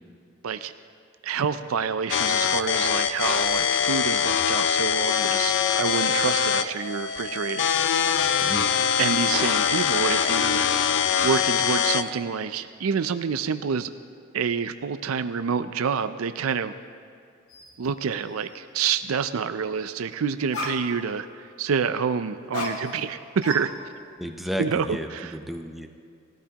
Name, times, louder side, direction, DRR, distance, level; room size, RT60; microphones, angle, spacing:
voice 1, 1.2-8.4 9.0-10.7 11.2-13.9 14.3-16.7 17.8-23.7 24.6-24.9 25.1-25.3, right 6 dB, 85° right, 11 dB, 0.5 m, -28 dB
sound 1, 2.1-12.1, left 8 dB, 60° left, 0.5 m, -23 dB
voice 2, 8.4-8.8 24.2-25.9, equal, ahead, 4 dB, 0.6 m, -33 dB
sound 2, 17.5-17.8 18.2-18.6 20.1-20.2 20.5-21.2 22.5-23.2 23.4-24.2, left 2 dB, 85° left, 2.1 m, -35 dB
19.5 x 13.5 x 2.9 m, 2.3 s
head